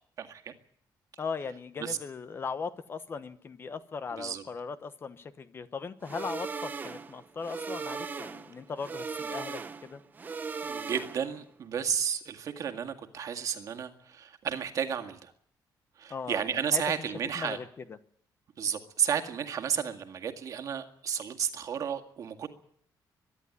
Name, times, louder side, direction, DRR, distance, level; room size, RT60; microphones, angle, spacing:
voice 1, 0.2-0.5 1.8-2.0 4.2-4.4 10.6-15.3 16.0-17.6 18.6-22.5, right 8 dB, 50° right, 6 dB, 2.0 m, -32 dB
voice 2, 1.2-10.0 16.1-18.0, left 5 dB, 30° left, 12 dB, 1.0 m, -38 dB
sound 1, 6.0-11.4, right 5 dB, 25° right, 0.9 m, -38 dB
23.5 x 11.0 x 9.8 m, 0.63 s
cardioid pair, 165°, 8 cm